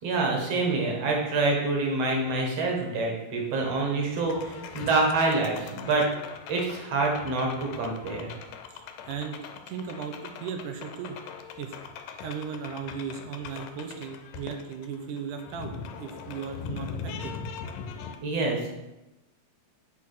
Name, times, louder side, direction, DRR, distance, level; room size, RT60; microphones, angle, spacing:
voice 1, 0.0-6.1 6.5-8.3 18.2-18.7, right 3 dB, 55° right, 0 dB, 2.5 m, -26 dB
sound 1, 4.1-18.2, left 6 dB, 90° left, 2.4 m, -41 dB
voice 2, 8.7-9.4 9.7-11.2 11.6-11.7 12.2-17.4, right 6 dB, 75° right, 5 dB, 2.3 m, -36 dB
8.7 x 4.4 x 6.1 m, 0.98 s
omnidirectional pair, 3.8 m